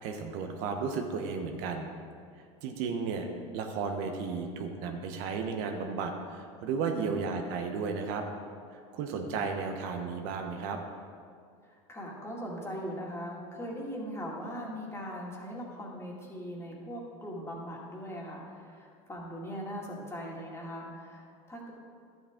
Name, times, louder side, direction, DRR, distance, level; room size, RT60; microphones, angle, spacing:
voice 1, 0.0-1.9 2.6-3.3 3.5-8.3 8.7-10.8, right 5 dB, 65° right, 4 dB, 1.0 m, -34 dB
voice 2, 6.9-7.4 11.7-21.7, equal, 15° left, -2 dB, 2.2 m, -40 dB
11.5 x 7.9 x 3.7 m, 2.2 s
supercardioid pair, 105°, 16 cm